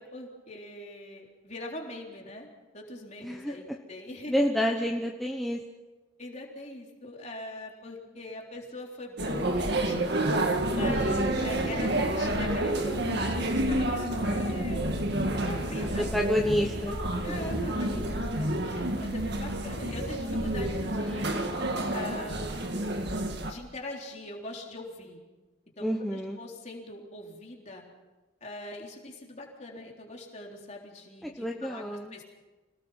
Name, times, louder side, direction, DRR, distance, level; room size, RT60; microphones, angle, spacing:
voice 1, 0.0-2.5 2.7-4.4 6.2-10.1 10.7-14.8 15.4-16.6 17.2-21.4 21.9-22.8 23.4-25.2 25.8-27.8 28.4-31.8 32.1-32.2, left 2 dB, 35° left, 0 dB, 3.7 m, -42 dB
voice 2, 3.2-3.5 4.3-5.6 10.8-11.3 15.8-17.0 25.8-26.4 31.2-32.2, equal, ahead, 0 dB, 1.1 m, -29 dB
sound 1, 9.2-23.5, right 1 dB, 50° right, 2.0 m, -29 dB
sound 2, 10.6-20.9, left 1 dB, 70° left, 3.3 m, -38 dB
26.0 x 19.0 x 5.8 m, 1.2 s
head